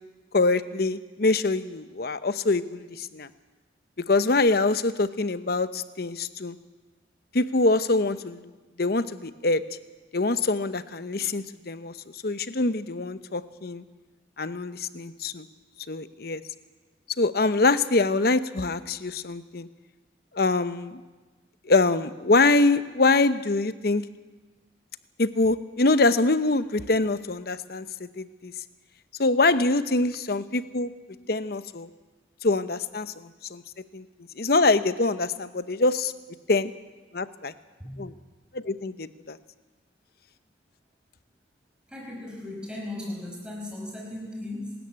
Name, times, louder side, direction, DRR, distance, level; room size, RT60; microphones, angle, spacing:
voice 1, 0.3-3.3 4.1-6.6 7.3-8.4 8.8-9.6 10.1-11.9 12.2-13.8 14.4-15.5 15.9-16.4 17.2-19.7 20.3-21.0 21.6-24.0 25.2-28.5 29.2-30.9 31.3-31.9 32.4-33.6 33.9-34.0 34.4-36.1 36.5-36.7 37.1-37.5 38.0-38.1 38.5-39.4, left 3 dB, 55° left, 13 dB, 0.8 m, -24 dB
voice 2, 41.9-44.7, left 1 dB, 5° right, -1 dB, 5.0 m, -37 dB
27.0 x 13.5 x 8.8 m, 1.3 s
head